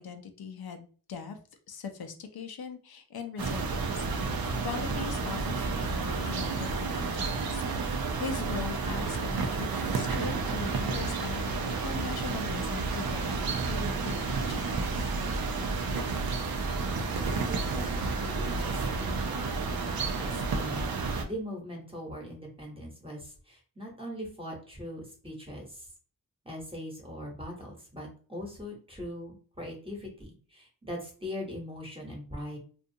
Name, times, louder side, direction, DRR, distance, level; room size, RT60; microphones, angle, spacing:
voice 1, 0.0-1.4 1.7-4.1 4.3-13.4 13.7-15.1, left 6 dB, 80° left, 5 dB, 0.5 m, -40 dB
sound 1, 3.4-21.2, right 4 dB, 75° right, 0.5 m, -31 dB
voice 2, 17.5-18.7 19.0-20.8 21.2-25.7 26.4-32.6, left 1 dB, 15° right, -1 dB, 1.0 m, -41 dB
2.5 x 2.3 x 2.7 m, 0.40 s
wide cardioid pair, 80°, 36 cm